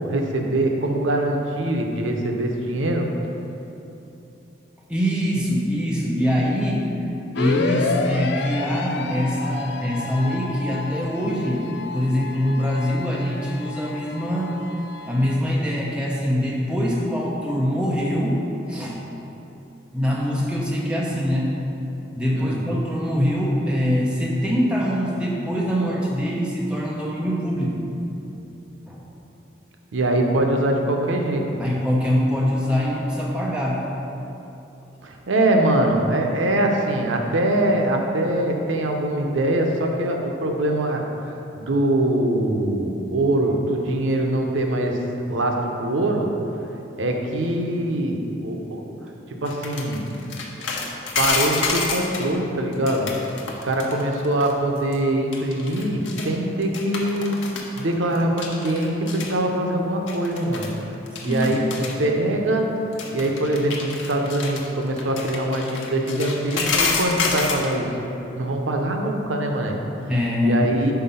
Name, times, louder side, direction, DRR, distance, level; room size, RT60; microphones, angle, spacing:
voice 1, 0.0-3.1 22.3-22.6 29.9-31.5 35.0-45.0 45.3-46.3 47.0-48.8 49.4-50.0 51.2-53.2 53.5-57.4 57.8-60.7 61.2-61.6 62.0-62.7 63.1-67.9 68.4-70.1 70.4-70.9, right 1 dB, 90° right, 2 dB, 0.7 m, -23 dB
voice 2, 4.9-6.9 7.4-14.5 15.1-18.4 18.7-19.0 19.9-21.5 22.2-27.7 28.9-29.0 31.6-33.8 57.4-57.6 61.2-61.7 70.1-70.9, equal, 5° right, -4 dB, 0.7 m, -23 dB
sound 1, 7.4-15.4, left 4 dB, 60° left, 0.3 m, -30 dB
sound 2, 49.4-52.3 52.7-54.5 54.8-55.0 55.3-56.3 56.6-57.8 58.1-59.3 60.1-60.8 61.1-62.0 62.9-67.8, left 4 dB, 85° left, 0.8 m, -28 dB
5.7 x 4.2 x 5.5 m, 2.9 s
head